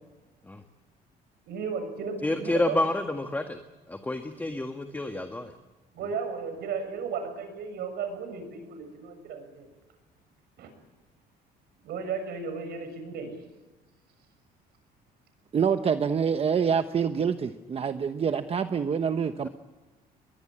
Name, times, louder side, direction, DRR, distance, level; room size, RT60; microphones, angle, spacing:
voice 1, 1.5-2.8 5.9-9.7 10.6-10.7 11.8-13.4, right 5 dB, 75° right, 8 dB, 6.8 m, -34 dB
voice 2, 2.2-3.6 3.9-5.5, left 2 dB, 10° left, 5 dB, 1.7 m, -29 dB
voice 3, 15.5-19.5, right 7 dB, 35° right, 8 dB, 1.1 m, -26 dB
22.0 x 21.5 x 8.9 m, 1.1 s
cardioid pair, 110°, 17 cm